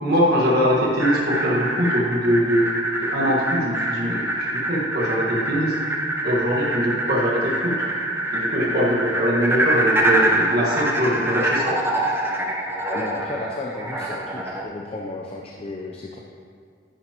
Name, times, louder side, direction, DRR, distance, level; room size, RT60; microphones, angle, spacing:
voice 1, 0.0-2.7 3.0-5.8 6.2-7.8 8.3-11.8, equal, 60° right, -5 dB, 1.6 m, -22 dB
sound 1, 1.0-14.6, right 1 dB, 15° right, 0.8 m, -25 dB
voice 2, 12.9-16.2, left 2 dB, 35° left, 0 dB, 0.6 m, -33 dB
11.0 x 9.4 x 3.0 m, 2.3 s
head